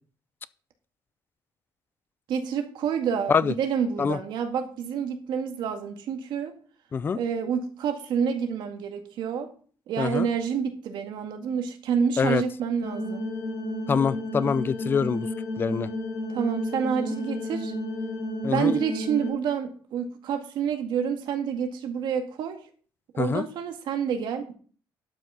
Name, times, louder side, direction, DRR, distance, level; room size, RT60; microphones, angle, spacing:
voice 1, 2.3-6.5 7.1-9.5 9.9-13.3 16.3-17.7 18.5-22.6 23.1-24.5, right 7 dB, 65° right, 5 dB, 1.9 m, -28 dB
voice 2, 10.0-10.3 12.2-12.4 13.9-15.3 15.6-15.9 18.4-18.8 23.2-23.4, left 6 dB, 25° left, 17 dB, 0.4 m, -25 dB
sound 1, 12.8-19.3, left 1 dB, 45° left, 3.0 m, -32 dB
12.0 x 6.0 x 5.6 m, 0.43 s
cardioid pair, 175°, 8 cm